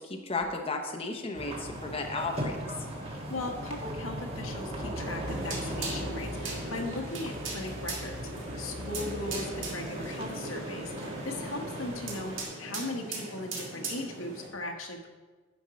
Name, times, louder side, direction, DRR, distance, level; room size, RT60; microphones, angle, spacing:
voice 1, 0.0-2.6, left 3 dB, 30° left, 3 dB, 0.8 m, -34 dB
sound 1, 1.3-12.4, equal, 30° right, 1.4 m, -38 dB
voice 2, 3.3-15.1, left 2 dB, 85° left, 2 dB, 1.2 m, -38 dB
sound 2, 5.3-14.5, right 2 dB, 70° right, 2.0 m, -38 dB
10.5 x 5.4 x 5.1 m, 1.4 s
head